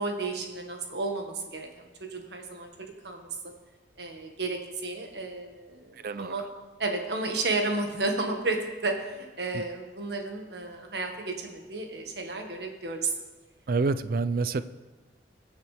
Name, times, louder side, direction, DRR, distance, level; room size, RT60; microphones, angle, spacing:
voice 1, 0.0-2.7 3.0-3.3 4.0-6.5 6.8-13.1, right 3 dB, 70° right, 3 dB, 1.6 m, -32 dB
voice 2, 6.0-6.3 9.5-9.6 13.7-14.6, right 3 dB, 55° right, 14 dB, 0.4 m, -27 dB
21.5 x 7.3 x 3.4 m, 1.3 s
head